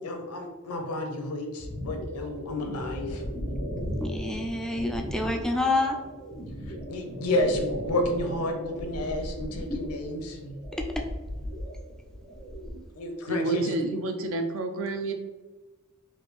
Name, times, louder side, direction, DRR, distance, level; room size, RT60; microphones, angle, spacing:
voice 1, 0.0-3.2 6.9-10.6 13.0-13.6, left 1 dB, 80° left, 4 dB, 0.6 m, -30 dB
sound 1, 1.6-12.8, equal, 30° right, 0.8 m, -37 dB
voice 2, 4.0-6.0 9.7-9.8 10.7-11.0, left 2 dB, 5° left, 2 dB, 0.3 m, -28 dB
voice 3, 13.3-15.1, right 3 dB, 65° right, 5 dB, 0.5 m, -29 dB
3.3 x 2.5 x 3.2 m, 1.2 s
head